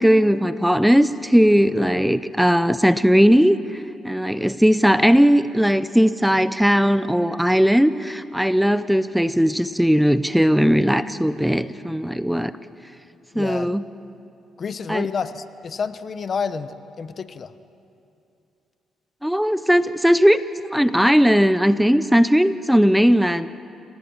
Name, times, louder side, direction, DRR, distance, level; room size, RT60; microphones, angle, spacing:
voice 1, 0.0-12.5 13.3-13.9 14.9-15.1 19.2-20.4 20.7-23.5, equal, ahead, 13 dB, 0.7 m, -18 dB
voice 2, 13.3-13.7 14.6-17.5, left 6 dB, 45° left, 12 dB, 1.0 m, -29 dB
28.5 x 18.0 x 8.8 m, 2.7 s
cardioid pair, 90°, 0 cm